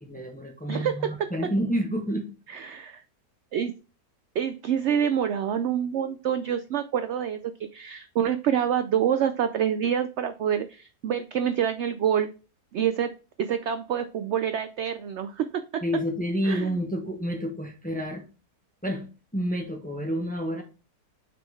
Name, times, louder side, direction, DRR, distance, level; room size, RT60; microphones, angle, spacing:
voice 1, 0.0-2.3 15.8-18.2 18.8-19.1 19.3-20.6, equal, 5° left, 3 dB, 0.8 m, -29 dB
voice 2, 0.7-1.5 2.5-3.0 3.5-3.7 4.4-12.3 12.7-13.1 13.4-15.8 16.4-16.7, right 9 dB, 80° right, 10 dB, 0.6 m, -27 dB
5.9 x 3.8 x 4.6 m, 0.33 s
omnidirectional pair, 1.7 m